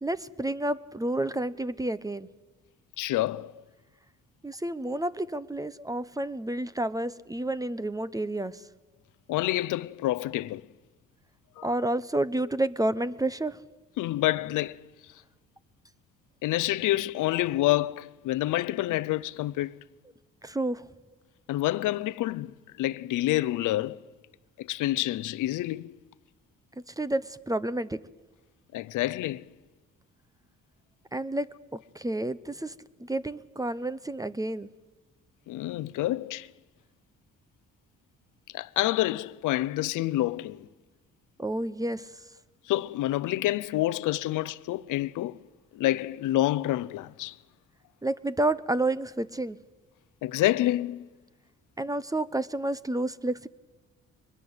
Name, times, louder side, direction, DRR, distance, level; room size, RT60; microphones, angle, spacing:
voice 1, 0.0-2.3 4.4-8.6 11.6-13.6 20.4-20.8 26.9-28.0 31.1-32.7 33.0-34.7 41.4-42.1 48.0-49.6 51.8-53.5, right 1 dB, 10° right, 0.8 m, -30 dB
voice 2, 3.0-3.5 9.3-10.6 11.6-11.7 14.0-14.8 16.4-19.7 21.5-24.0 24.6-25.9 28.7-29.4 35.5-36.5 38.5-40.7 42.7-45.4 45.7-47.3 50.2-51.1, left 15 dB, 85° left, 0.7 m, -28 dB
23.0 x 21.0 x 8.1 m
cardioid pair, 90°, 30 cm